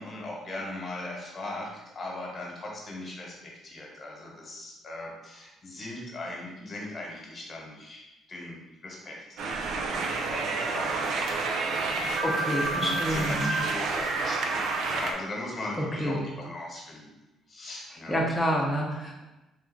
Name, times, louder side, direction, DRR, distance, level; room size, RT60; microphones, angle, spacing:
voice 1, 0.0-1.7 1.9-9.2 9.4-17.1 17.5-18.2, left 2 dB, 40° left, -2 dB, 1.3 m, -39 dB
sound 1, 9.4-15.1, right 3 dB, 70° right, 0.5 m, -29 dB
voice 2, 12.2-13.6 15.8-16.2 18.1-19.2, equal, 10° left, -3 dB, 0.8 m, -28 dB
3.6 x 2.7 x 3.9 m, 0.99 s
cardioid pair, 95°, 0 cm